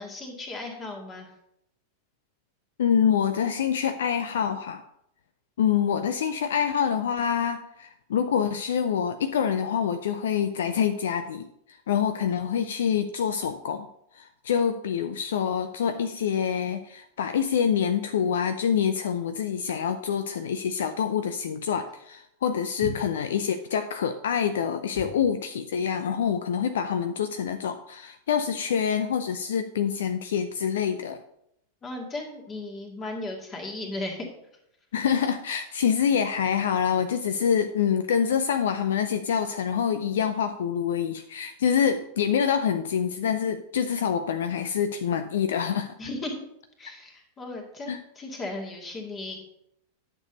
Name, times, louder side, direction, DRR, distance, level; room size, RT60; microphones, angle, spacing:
voice 1, 0.0-1.3 22.8-22.9 25.0-25.1 31.8-34.3 46.0-46.4 46.8-49.4, left 2 dB, 20° left, 1 dB, 2.2 m, -36 dB
voice 2, 2.8-4.8 5.6-13.9 14.1-31.2 34.9-46.0 47.9-48.0, left 8 dB, 60° left, 9 dB, 0.5 m, -26 dB
10.5 x 6.9 x 4.0 m, 0.76 s
figure-of-eight pair, 90°, 0 cm